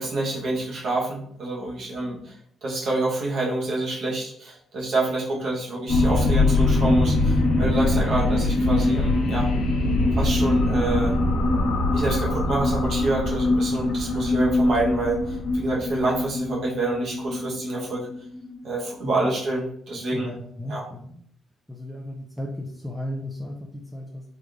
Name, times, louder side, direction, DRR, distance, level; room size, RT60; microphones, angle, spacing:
voice 1, 0.0-2.4 2.6-9.5 10.1-11.2 11.9-18.1 18.6-20.3 20.7-20.8, right 2 dB, 65° right, -4 dB, 1.2 m, -27 dB
sound 1, 5.9-18.7, left 2 dB, 70° left, 0.7 m, -23 dB
voice 2, 19.0-19.3 19.9-21.2 21.7-24.2, left 1 dB, ahead, 0 dB, 0.5 m, -35 dB
3.5 x 3.0 x 2.5 m, 0.65 s
cardioid pair, 90°, 0 cm